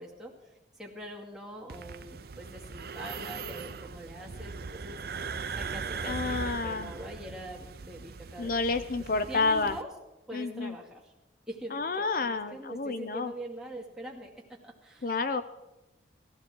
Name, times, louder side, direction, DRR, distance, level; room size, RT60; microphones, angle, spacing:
voice 1, 0.0-5.3 5.6-8.9 9.3-9.9 10.3-11.1 11.5-15.2, right 1 dB, 5° right, -3 dB, 2.3 m, -44 dB
sound 1, 1.7-9.8, right 5 dB, 60° right, 0.6 m, -39 dB
voice 2, 6.0-6.9 8.4-9.7 10.3-10.7 11.7-13.3 15.0-15.4, left 3 dB, 50° left, 11 dB, 0.5 m, -30 dB
17.0 x 14.5 x 4.6 m, 0.99 s
head